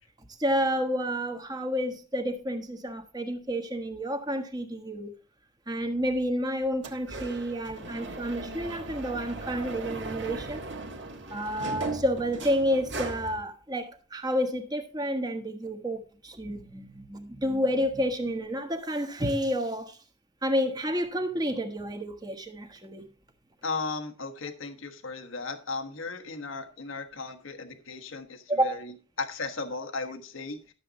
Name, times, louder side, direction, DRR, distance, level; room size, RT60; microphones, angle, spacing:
voice 1, 0.4-5.1 5.7-10.6 11.3-20.0 20.4-23.1 28.5-28.8, equal, 20° right, 1.3 m, -30 dB
sound 1, 6.8-13.4, right 3 dB, 60° right, 1.6 m, -38 dB
voice 2, 23.6-28.9 29.2-30.6, left 4 dB, 80° left, 1.3 m, -36 dB
12.5 x 7.5 x 4.0 m
head